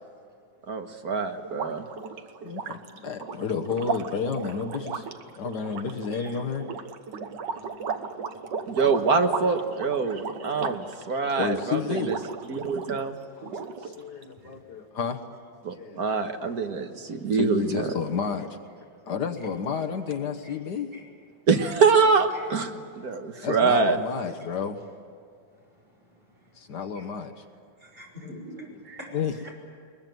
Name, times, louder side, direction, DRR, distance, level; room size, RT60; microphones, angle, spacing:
voice 1, 0.7-1.9 8.7-12.2 12.5-13.2 15.6-17.9 21.5-24.0, right 5 dB, 60° right, 6 dB, 1.9 m, -25 dB
sound 1, 1.4-13.1 13.4-14.2, right 5 dB, 85° right, 1.8 m, -36 dB
voice 2, 2.4-5.1 5.3-6.7 8.8-9.0 9.3-9.5 10.0-10.1 10.4-10.5 11.4-12.2 13.4-15.4 15.7-16.4 17.3-18.6 19.1-20.9 23.4-24.8 26.6-27.3 28.2-28.4 29.1-29.3, left 6 dB, 70° left, 6 dB, 1.8 m, -31 dB
voice 3, 27.8-29.2 29.4-29.5, equal, 30° right, -1 dB, 6.6 m, -45 dB
21.5 x 21.5 x 9.3 m, 2.3 s
omnidirectional pair, 1.9 m